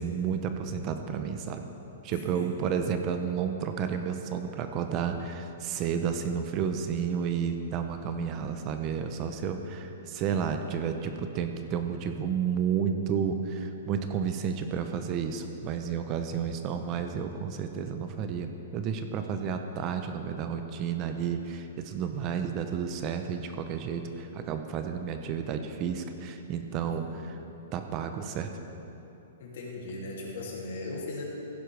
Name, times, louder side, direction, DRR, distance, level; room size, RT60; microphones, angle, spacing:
voice 1, 0.0-1.7 2.0-27.4 27.7-28.5, right 7 dB, 30° right, 7 dB, 0.7 m, -31 dB
voice 2, 2.1-2.8 26.8-27.2 29.4-31.2, left 2 dB, 65° left, -2 dB, 2.7 m, -39 dB
15.5 x 11.0 x 3.4 m, 3.0 s
hypercardioid pair, 155°, 0 cm